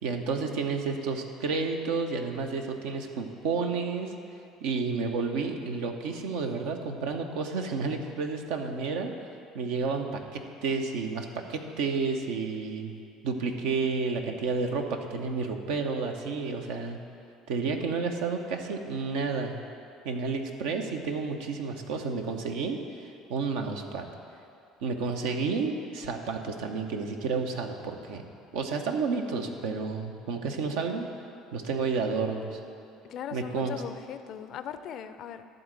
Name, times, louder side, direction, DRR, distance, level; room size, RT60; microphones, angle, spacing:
voice 1, 0.0-4.1 4.6-9.1 9.5-12.9 13.2-17.0 17.5-19.6 20.0-22.8 23.3-24.1 24.8-28.2 28.5-31.1 31.5-32.6 33.3-33.8, right 4 dB, 70° right, 4 dB, 0.8 m, -31 dB
voice 2, 33.0-35.4, left 9 dB, 55° left, 11 dB, 0.5 m, -39 dB
11.5 x 4.0 x 7.7 m, 2.5 s
figure-of-eight pair, 60°, 0 cm